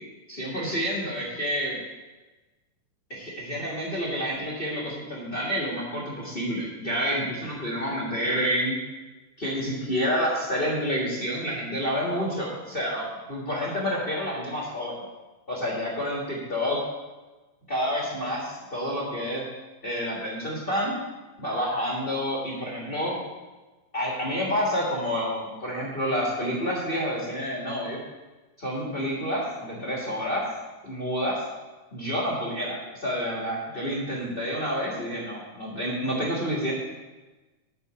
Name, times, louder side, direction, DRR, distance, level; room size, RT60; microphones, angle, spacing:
voice 1, 0.3-1.8 3.1-8.8 9.4-15.0 15.5-16.8 17.7-19.4 19.8-20.9 21.4-23.2 23.9-28.0 28.6-30.4 30.8-31.4 31.9-36.7, equal, 45° left, -4 dB, 0.7 m, -29 dB
8.2 x 5.7 x 6.8 m, 1.2 s
omnidirectional pair, 3.8 m